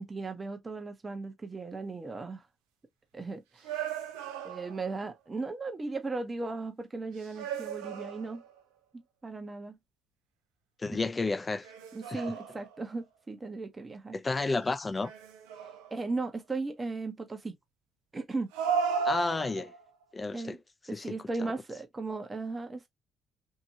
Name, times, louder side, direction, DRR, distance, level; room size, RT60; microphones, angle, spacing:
voice 1, 0.0-2.5 3.1-3.8 4.4-8.4 9.2-9.8 11.9-14.2 15.9-17.5 18.1-18.5 20.3-20.6 20.9-22.9, right 3 dB, 30° right, 0.8 m, -36 dB
sound 1, 3.6-5.0 7.2-8.6 11.6-12.9 15.0-16.1 18.5-19.9, right 6 dB, 85° right, 0.5 m, -35 dB
voice 2, 10.8-11.7 12.1-12.2 14.1-15.1 19.0-19.7 20.1-20.6 20.9-21.1 21.4-21.5, left 3 dB, 30° left, 0.5 m, -31 dB
2.8 x 2.6 x 2.7 m
hypercardioid pair, 50°, 0 cm